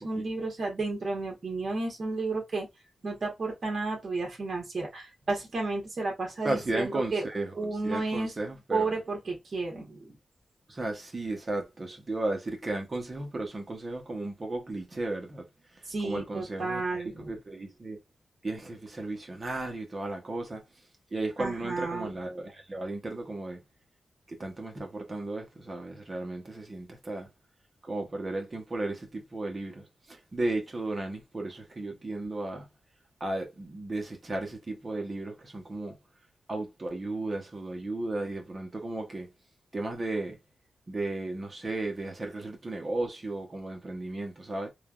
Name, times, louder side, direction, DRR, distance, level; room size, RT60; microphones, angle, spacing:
voice 1, 0.0-2.7 3.0-7.2 7.6-8.3 8.7-10.2 15.9-17.4 21.4-22.1, right 3 dB, 40° right, 1.2 m, -32 dB
voice 2, 6.4-9.0 10.7-15.5 15.7-18.0 18.4-20.6 21.1-23.6 24.3-27.3 27.8-32.7 33.2-36.0 36.5-39.3 39.7-40.4 40.9-44.7, right 2 dB, 25° right, 0.7 m, -34 dB
3.2 x 2.2 x 2.3 m
wide cardioid pair, 170°, 0 cm